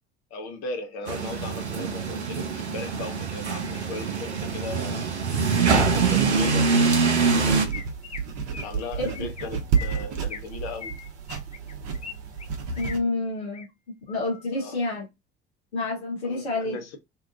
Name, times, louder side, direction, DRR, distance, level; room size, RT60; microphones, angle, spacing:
voice 1, 0.3-5.1 5.6-7.8 8.5-11.0 14.5-14.8 16.2-17.0, left 3 dB, 50° left, 0.9 m, -38 dB
sound 1, 1.1-7.7, right 4 dB, 85° right, 0.5 m, -24 dB
sound 2, 7.3-13.0, right 6 dB, 50° right, 0.8 m, -31 dB
Chirp tweet, 7.7-8.2 8.5-8.7 9.1-9.4 9.7-10.5 10.8-12.1 12.4-13.0 13.4-13.7 14.1-14.4, left 6 dB, 20° left, 0.5 m, -40 dB
voice 2, 8.9-9.3 12.8-15.1 15.7-16.8, left 2 dB, 80° left, 0.7 m, -29 dB
2.7 x 2.3 x 2.3 m
figure-of-eight pair, 60°, 33 cm